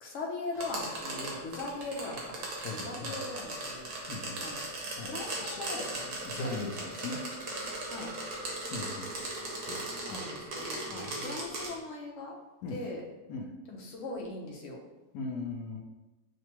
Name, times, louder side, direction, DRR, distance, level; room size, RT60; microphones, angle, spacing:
voice 1, 0.0-2.4 2.7-3.9 4.4-4.6 5.0-6.2 6.4-6.6 7.9-8.1 10.1-12.3 12.7-13.0 13.7-14.8, left 3 dB, 60° left, -1 dB, 1.1 m, -40 dB
sound 1, 0.5-11.7, right 2 dB, 70° right, 1.5 m, -38 dB
voice 2, 2.6-3.2 4.1-4.4 5.0-5.1 5.4-5.6 6.2-7.2 8.7-9.1 9.6-10.2 10.9-11.4 12.6-12.8 13.3-13.5 15.1-15.8, left 3 dB, 85° left, 1 dB, 1.2 m, -39 dB
6.4 x 2.6 x 2.9 m, 1.0 s
omnidirectional pair, 1.7 m